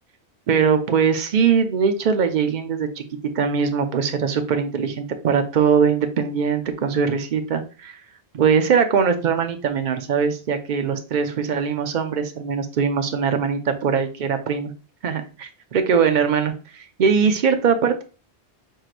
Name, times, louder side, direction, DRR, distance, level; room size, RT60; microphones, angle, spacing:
voice 1, 0.5-3.0 3.3-8.0 8.3-14.7 15.0-18.0, right 6 dB, 50° right, 8 dB, 0.7 m, -21 dB
4.7 x 4.5 x 2.5 m, 0.35 s
omnidirectional pair, 1.1 m